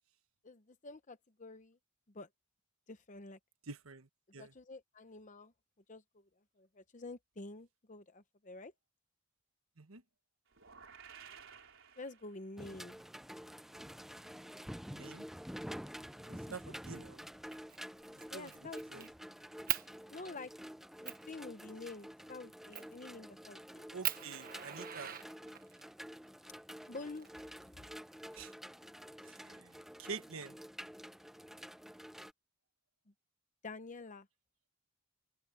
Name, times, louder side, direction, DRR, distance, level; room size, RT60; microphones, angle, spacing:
voice 1, 0.4-1.8 2.1-2.3 2.9-3.4 4.4-5.5 5.9-6.0 6.6-8.7 12.0-13.0 16.5-16.6 18.3-19.1 20.1-20.5 21.0-23.9 26.9-27.3 33.6-34.3, left 3 dB, 35° left, 0.8 m, -48 dB
voice 2, 3.7-4.5 9.8-10.0 14.9-15.2 16.3-17.2 18.3-19.0 23.9-25.2 28.3-28.5 29.2-30.6, right 4 dB, 85° right, 1.4 m, -48 dB
sound 1, 10.5-12.7, right 7 dB, 65° right, 4.5 m, -55 dB
sound 2, 12.6-32.3, equal, ahead, 0.5 m, -49 dB
Fire, 17.5-17.8 18.2-19.1 19.7-19.9 20.5-20.6 21.0-21.3 22.7-23.0 23.5-23.6 24.0-25.8 26.8-27.8, right 12 dB, 45° right, 1.4 m, -39 dB
head